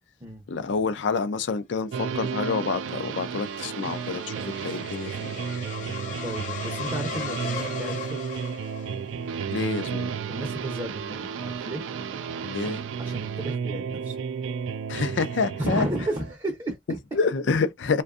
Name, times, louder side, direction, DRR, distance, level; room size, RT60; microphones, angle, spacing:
voice 1, 0.5-5.3 9.5-10.1 12.5-12.8 14.9-15.9 17.1-18.0, left 4 dB, 75° left, 0.4 m, -27 dB
sound 1, 1.9-16.3, right 6 dB, 90° right, 0.3 m, -33 dB
sound 2, 2.3-9.4, left 5 dB, 40° left, 0.7 m, -38 dB
voice 2, 6.2-8.2 10.3-11.8 13.0-14.2 15.6-17.2, right 1 dB, 20° right, 0.6 m, -33 dB
2.6 x 2.2 x 2.4 m
head